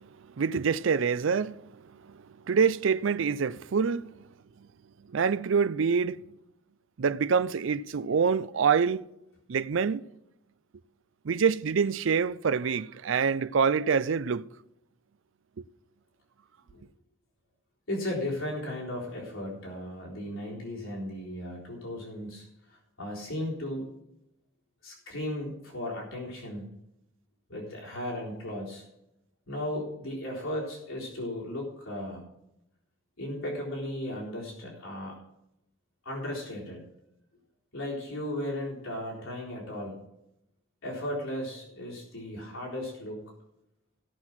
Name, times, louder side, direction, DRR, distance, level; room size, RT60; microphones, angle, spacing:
voice 1, 0.4-1.6 2.0-4.1 5.1-6.2 7.0-9.1 9.5-10.1 11.2-14.5, right 6 dB, 70° right, 0.4 m, -26 dB
voice 2, 17.9-23.9 24.8-26.7 27.5-28.8 29.5-32.2 33.2-35.2 36.0-36.8 37.7-40.0 40.8-43.2, left 1 dB, 80° left, 3.9 m, -36 dB
17.0 x 6.1 x 5.9 m
head